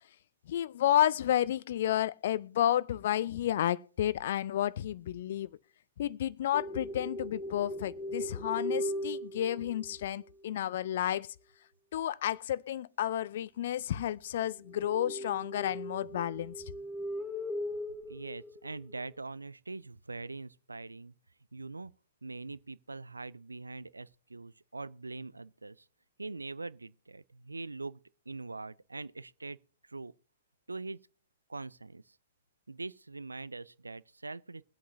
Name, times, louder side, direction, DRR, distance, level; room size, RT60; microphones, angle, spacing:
voice 1, 0.5-5.5 6.0-11.3 11.9-16.5, left 11 dB, 55° left, 0.5 m, -31 dB
sound 1, 6.5-10.2 14.7-19.1, equal, 10° left, 1.6 m, -38 dB
voice 2, 18.1-21.1 21.5-21.9 22.2-25.7 26.2-28.0 28.3-29.6 29.9-30.1 30.7-31.0 31.5-32.0 32.7-34.6, right 3 dB, 80° right, 0.4 m, -42 dB
23.0 x 8.3 x 2.7 m
figure-of-eight pair, 110°, 0 cm